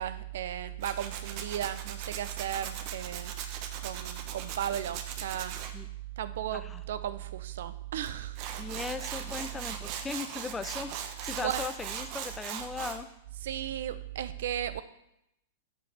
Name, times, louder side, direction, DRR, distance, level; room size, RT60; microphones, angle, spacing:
voice 1, 0.0-3.3 3.8-5.6 6.2-8.4 11.4-11.7 13.3-14.8, right 11 dB, 65° right, 12 dB, 0.6 m, -35 dB
Tools, 0.8-5.7 8.0-8.1 8.3-13.0, right 8 dB, 45° right, 0.9 m, -39 dB
voice 2, 8.6-10.9 11.2-13.1, left 4 dB, 15° left, 11 dB, 0.6 m, -38 dB
8.1 x 5.1 x 5.9 m, 0.82 s
figure-of-eight pair, 100°, 0 cm